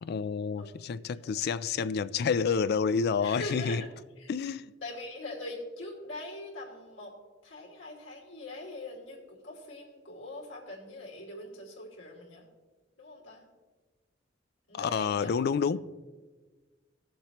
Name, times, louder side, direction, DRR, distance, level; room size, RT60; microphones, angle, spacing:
voice 1, 0.0-3.8 4.3-4.7 14.7-15.8, left 6 dB, 55° left, 0.3 m, -29 dB
voice 2, 0.6-1.4 3.2-3.9 4.2-4.3 4.8-7.1 7.4-12.5 13.0-13.4 14.7-15.3, left 1 dB, 80° left, 2.8 m, -42 dB
18.5 x 7.3 x 3.0 m
head